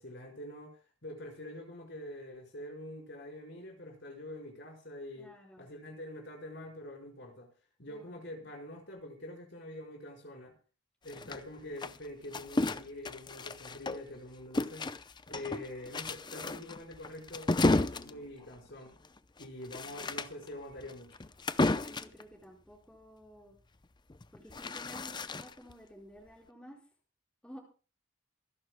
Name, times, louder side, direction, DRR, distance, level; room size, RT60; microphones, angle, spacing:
voice 1, 0.0-7.5 7.8-10.5 11.0-14.9 15.3-18.9 19.4-21.2, left 1 dB, 60° left, 4.9 m, -45 dB
voice 2, 5.1-5.6 7.9-8.2 19.8-20.2 21.8-23.5 24.3-26.8 27.4-27.6, equal, 5° left, 4.9 m, -53 dB
sound 1, 11.1-14.2 14.5-22.2 24.1-25.7, left 2 dB, 20° left, 0.6 m, -33 dB
27.0 x 11.5 x 2.2 m
head